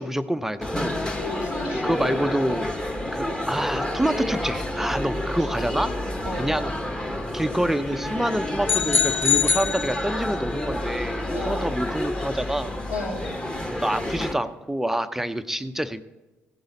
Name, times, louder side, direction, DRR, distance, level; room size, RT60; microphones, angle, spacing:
voice 1, 0.0-0.9 1.8-2.7 3.1-5.9 6.3-6.7 7.3-12.7 13.8-16.0, right 1 dB, 5° right, 11 dB, 0.6 m, -27 dB
sound 1, 0.6-14.3, left 1 dB, 10° left, 1.3 m, -29 dB
voice 2, 1.2-2.2 6.2-6.5 11.3-11.8 12.9-13.3, left 2 dB, 65° left, -3 dB, 3.5 m, -33 dB
sound 2, 8.7-10.5, left 6 dB, 35° left, 2.8 m, -23 dB
16.0 x 10.5 x 4.1 m, 1.1 s
figure-of-eight pair, 45°, 7 cm